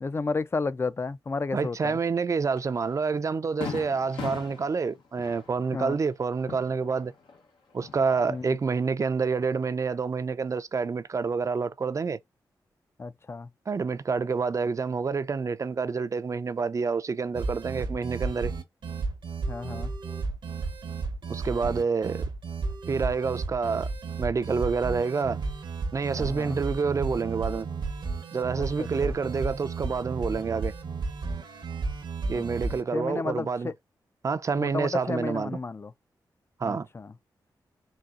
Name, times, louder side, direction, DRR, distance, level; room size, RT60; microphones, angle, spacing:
voice 1, 0.0-2.0 5.7-6.0 8.3-8.6 13.0-13.5 19.5-19.9 26.1-26.6 28.6-29.1 32.3-32.4 32.7-33.7 34.6-35.9 36.6-37.1, left 4 dB, 30° left, 0.4 m, -32 dB
voice 2, 1.5-7.1 7.7-12.2 13.7-18.5 21.3-22.2 22.9-23.9 24.2-25.4 25.9-27.7 28.3-30.7 32.3-33.7 34.2-35.6 36.6-36.9, right 5 dB, 40° right, 0.4 m, -28 dB
Fireworks, 2.6-2.7 3.1-3.2 3.6-7.4 7.7-8.5, left 5 dB, 80° left, 0.9 m, -40 dB
sound 1, 17.3-32.8, right 4 dB, 70° right, 0.8 m, -33 dB
4.0 x 2.3 x 2.4 m
cardioid pair, 50°, 8 cm